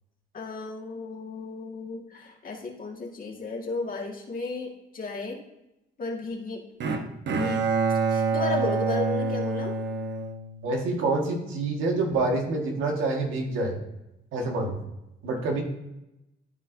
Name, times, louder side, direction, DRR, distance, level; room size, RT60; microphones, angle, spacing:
voice 1, 0.3-5.4 6.0-6.9 7.4-7.6 8.1-9.7, left 3 dB, 45° left, 0 dB, 1.9 m, -34 dB
Bowed string instrument, 6.8-11.0, right 4 dB, 65° right, 1.0 m, -27 dB
voice 2, 10.6-13.8 14.3-14.8 15.2-15.6, right 2 dB, 85° right, 1 dB, 1.7 m, -27 dB
12.5 x 4.7 x 2.7 m, 0.90 s
cardioid pair, 90°, 20 cm